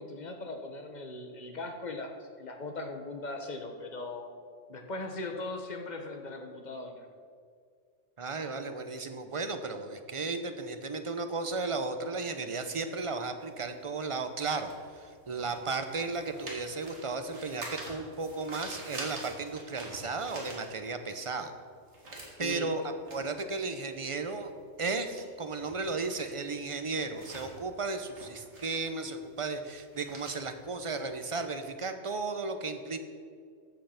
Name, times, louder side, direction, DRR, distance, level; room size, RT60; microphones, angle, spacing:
voice 1, 0.0-4.3 4.7-7.1 22.4-22.7, left 2 dB, 40° left, 5 dB, 1.1 m, -39 dB
voice 2, 8.2-21.5 22.4-24.5 24.8-33.0, right 3 dB, 35° right, 8 dB, 0.6 m, -35 dB
sound 1, 13.4-21.2 21.5-31.6, right 2 dB, 65° right, 2.4 m, -47 dB
14.0 x 5.6 x 5.8 m, 2.1 s
omnidirectional pair, 1.3 m